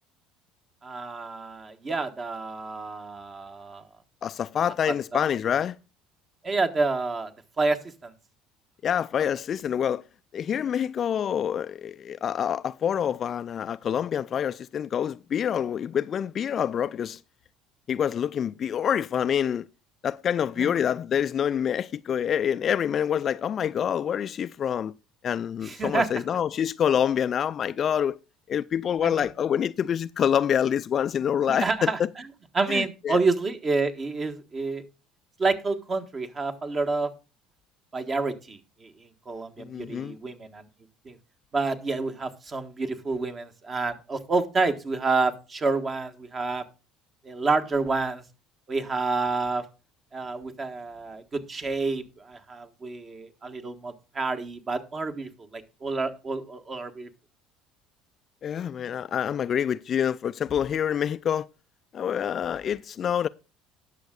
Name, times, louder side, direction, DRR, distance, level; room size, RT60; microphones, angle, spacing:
voice 1, 0.8-3.8 4.9-5.2 6.4-7.3 7.6-8.1 20.6-20.7 25.6-26.2 29.0-29.3 31.5-32.0 32.5-34.8 35.4-37.1 37.9-40.6 41.0-41.2 41.5-46.6 47.2-48.2 48.7-49.6 50.1-57.1, right 3 dB, 30° right, 1.4 m, -29 dB
voice 2, 4.2-5.8 8.8-10.0 10.3-17.2 17.9-19.7 20.0-24.9 25.2-28.2 28.5-32.1 32.7-33.2 39.6-40.2 58.4-61.5 61.9-63.3, left 8 dB, 40° left, 0.4 m, -26 dB
19.0 x 6.5 x 2.4 m
figure-of-eight pair, 60°, 0 cm